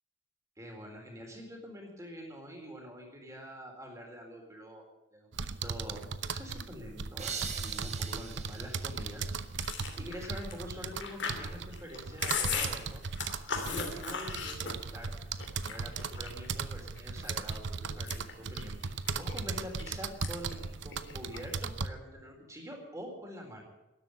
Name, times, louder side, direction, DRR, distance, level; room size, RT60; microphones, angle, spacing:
voice 1, 0.6-4.8 5.1-9.5 10.0-13.0 13.7-15.1 15.7-23.6, equal, 15° right, 1 dB, 4.0 m, -46 dB
sound 1, 5.3-21.9, right 5 dB, 60° right, 0.8 m, -37 dB
sound 2, 7.2-10.0, right 6 dB, 35° right, 1.9 m, -43 dB
Chewing mastication, 9.6-15.0 15.4-16.5 17.0-17.5 17.9-19.9 20.2-20.5 20.8-21.6, left 6 dB, 60° left, 2.9 m, -37 dB
13.0 x 11.5 x 9.6 m, 0.98 s
head